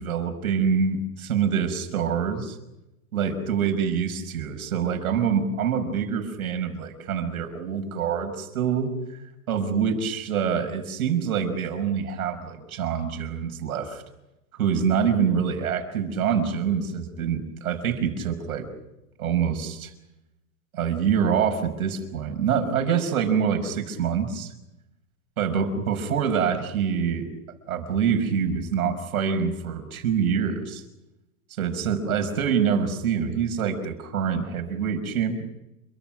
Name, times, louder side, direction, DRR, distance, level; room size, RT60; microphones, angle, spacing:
voice 1, 0.0-2.6 3.1-9.2 9.5-14.0 14.5-18.7 19.2-19.9 20.7-24.5 25.4-27.3 27.7-30.8 31.6-35.4, right 7 dB, 75° right, 6 dB, 5.7 m, -25 dB
28.5 x 24.5 x 6.2 m, 0.91 s
hypercardioid pair, 135°, 43 cm